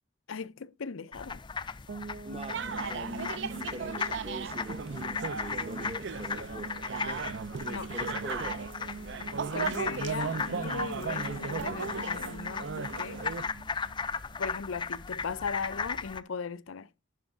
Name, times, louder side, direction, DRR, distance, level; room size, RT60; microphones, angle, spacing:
voice 1, 0.3-1.4 7.7-8.0 9.5-13.2 14.4-16.9, left 5 dB, 80° left, 0.6 m, -38 dB
sound 1, 1.1-16.2, left 5 dB, 25° left, 0.4 m, -37 dB
sound 2, 1.9-14.8, right 4 dB, 90° right, 1.0 m, -45 dB
voice 2, 2.2-7.0 7.9-8.7, right 1 dB, 30° right, 0.8 m, -43 dB
sound 3, 2.5-13.5, right 5 dB, 60° right, 0.5 m, -37 dB
11.0 x 6.3 x 3.6 m
head